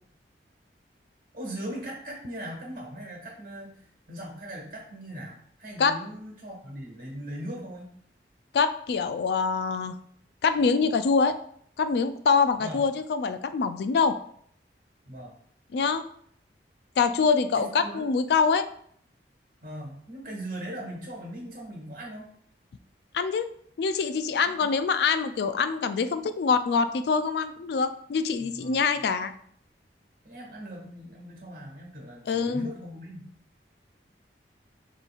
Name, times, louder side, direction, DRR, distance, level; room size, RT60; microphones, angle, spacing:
voice 1, 1.3-3.7 4.1-7.9 12.6-12.8 15.1-15.3 17.5-18.1 19.6-22.3 24.4-24.7 28.5-28.9 30.2-33.2, right 1 dB, 50° right, 0 dB, 1.4 m, -39 dB
voice 2, 8.5-10.0 10.4-11.4 11.8-14.2 15.7-16.1 17.0-18.7 23.1-23.5 23.8-29.3 32.3-32.7, left 5 dB, 65° left, 11 dB, 0.3 m, -25 dB
6.6 x 3.1 x 2.4 m, 0.63 s
head